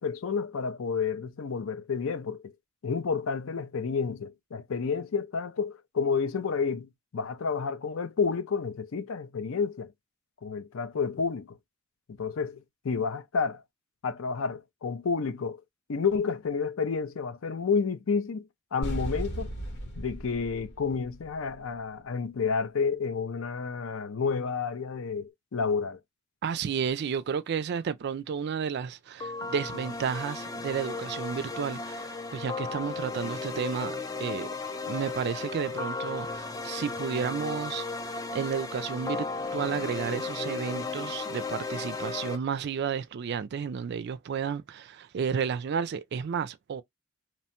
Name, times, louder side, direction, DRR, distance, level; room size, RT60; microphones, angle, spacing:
voice 1, 0.0-2.5 2.8-9.9 10.4-11.6 12.1-13.6 14.0-15.6 15.9-19.5 20.0-26.0, left 5 dB, 75° left, 0.5 m, -30 dB
sound 1, 18.8-21.8, right 1 dB, 55° left, 1.0 m, -36 dB
voice 2, 26.4-34.5 34.9-46.8, right 6 dB, 55° right, 0.3 m, -32 dB
sound 2, 29.2-42.4, left 3 dB, 15° left, 0.4 m, -35 dB
2.9 x 2.2 x 2.8 m
head